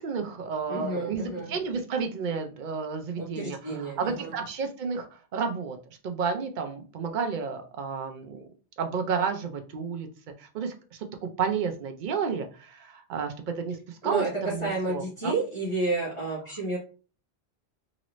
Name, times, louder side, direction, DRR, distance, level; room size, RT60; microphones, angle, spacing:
voice 1, 0.0-5.1 5.3-5.8 6.0-8.5 8.8-10.1 10.4-15.4, right 5 dB, 55° right, 5 dB, 0.7 m, -31 dB
voice 2, 0.7-1.5 3.2-4.3 14.0-16.8, right 2 dB, 30° left, -6 dB, 1.1 m, -30 dB
3.0 x 2.6 x 3.0 m, 0.37 s
omnidirectional pair, 1.1 m